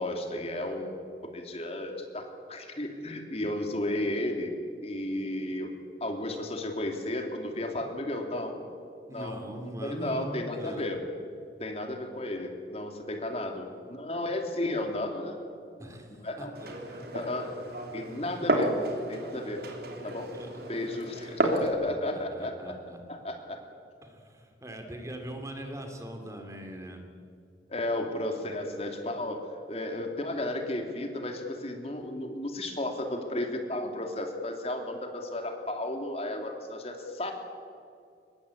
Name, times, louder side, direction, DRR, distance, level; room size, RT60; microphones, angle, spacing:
voice 1, 0.0-4.5 4.8-5.7 6.0-8.6 9.1-9.4 9.8-11.0 11.6-15.4 16.2-16.5 17.1-17.5 17.9-18.7 19.1-19.6 20.0-20.3 20.7-22.7 23.1-23.6 27.7-37.3, left 1 dB, 35° left, 4 dB, 2.8 m, -33 dB
voice 2, 9.1-10.9 15.8-17.0 20.3-20.5 21.8-23.0 24.0-27.0, right 1 dB, 20° right, 4 dB, 2.7 m, -41 dB
Glass, 16.5-21.7, right 1 dB, 60° right, 3.5 m, -32 dB
24.0 x 21.0 x 8.5 m, 2.4 s
head